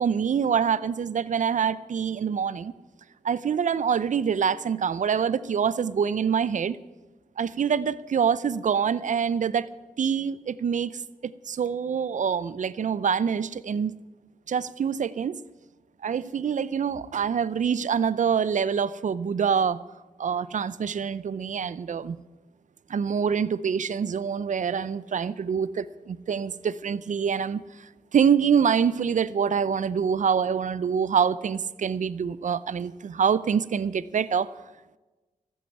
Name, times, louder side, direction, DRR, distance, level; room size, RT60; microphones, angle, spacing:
voice 1, 0.0-2.7 3.2-6.8 7.4-9.7 10.0-10.9 11.2-14.0 14.5-15.4 16.0-19.8 20.2-22.2 22.9-34.5, right 7 dB, 60° right, 17 dB, 0.6 m, -25 dB
14.0 x 7.9 x 9.6 m, 1.2 s
cardioid pair, 55°, 14 cm